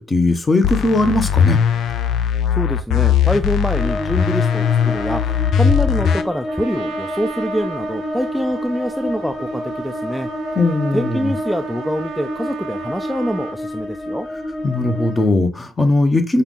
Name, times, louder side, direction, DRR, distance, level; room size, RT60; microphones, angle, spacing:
voice 1, 0.0-1.6 10.6-11.3 14.6-16.4, left 2 dB, 25° left, 7 dB, 0.9 m, -18 dB
sound 1, 0.6-6.2, left 8 dB, 75° left, 0.4 m, -18 dB
voice 2, 2.5-10.3 10.9-14.3, equal, ahead, 7 dB, 0.3 m, -25 dB
sound 2, 3.7-15.3, left 1 dB, 50° left, 1.7 m, -29 dB
Trumpet, 6.5-13.6, right 10 dB, 90° right, 0.5 m, -34 dB
5.7 x 2.4 x 3.7 m, 0.35 s
cardioid pair, 90°, 0 cm